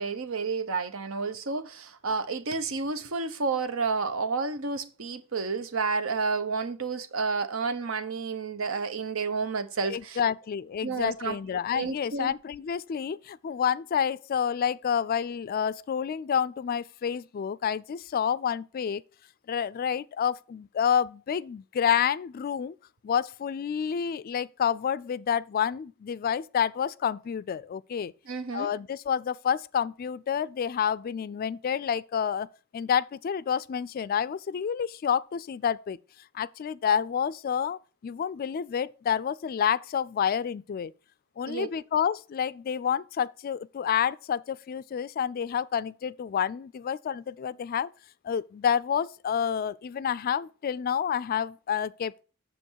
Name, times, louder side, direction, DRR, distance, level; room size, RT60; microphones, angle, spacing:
voice 1, 0.0-10.2 10.8-11.4 11.7-12.4 28.3-28.7 41.5-41.7, right 4 dB, 80° right, 0.8 m, -30 dB
voice 2, 9.9-19.0 19.5-22.7 23.0-28.1 28.5-36.0 36.3-40.9 41.4-47.9 48.2-52.2, left 8 dB, 45° left, 0.3 m, -29 dB
7.6 x 6.6 x 4.6 m
head